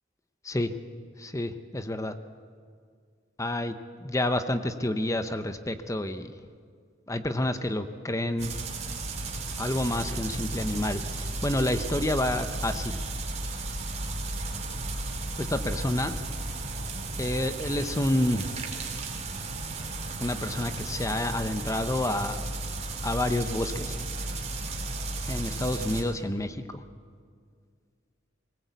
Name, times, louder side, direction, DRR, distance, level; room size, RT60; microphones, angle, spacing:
voice 1, 1.2-2.1 3.4-6.3 7.1-8.5 9.6-13.0 15.4-16.1 17.2-18.5 20.2-22.4 23.0-24.0 25.3-26.8, left 1 dB, 15° left, 10 dB, 0.8 m, -29 dB
sound 1, 8.4-26.0, right 2 dB, 35° right, 3.1 m, -34 dB
21.0 x 19.0 x 8.2 m, 2.1 s
head